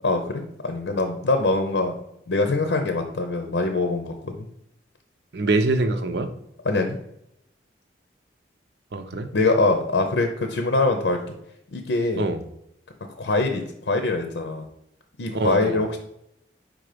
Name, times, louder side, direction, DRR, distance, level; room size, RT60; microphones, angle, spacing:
voice 1, 0.0-1.9 2.3-4.5 6.6-7.0 9.3-11.3 11.7-12.3 13.2-14.7 15.2-16.0, left 2 dB, 85° left, 5 dB, 0.7 m, -23 dB
voice 2, 5.3-6.3 8.9-9.3 12.2-12.4 15.3-15.8, right 2 dB, 70° right, 8 dB, 0.6 m, -24 dB
5.0 x 3.9 x 5.0 m, 0.79 s
head